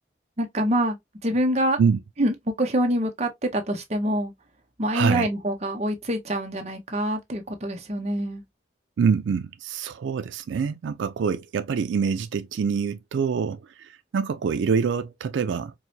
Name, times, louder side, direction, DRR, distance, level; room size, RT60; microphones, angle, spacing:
voice 1, 0.4-1.0 1.2-1.8 2.2-4.3 4.8-8.4, equal, 35° right, 0.7 m, -25 dB
voice 2, 4.9-5.3 9.0-15.7, right 6 dB, 85° right, 0.4 m, -25 dB
4.6 x 2.1 x 2.6 m
head